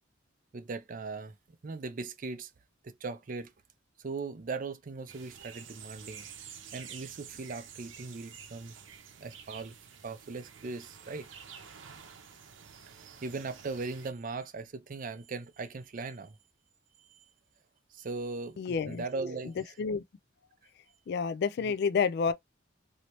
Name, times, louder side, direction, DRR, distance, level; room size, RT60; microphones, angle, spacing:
voice 1, 0.5-1.4 1.6-2.5 2.8-3.5 4.0-6.2 6.7-8.7 9.2-9.8 10.0-11.3 12.9-16.4 17.0-17.2 17.9-19.8 21.6-21.7, right 3 dB, 45° right, 0.5 m, -39 dB
sound 1, 5.1-14.1, right 7 dB, 80° right, 0.7 m, -49 dB
voice 2, 18.6-19.0 19.8-20.0 21.1-22.3, left 5 dB, 55° left, 0.3 m, -29 dB
2.9 x 2.7 x 3.0 m
head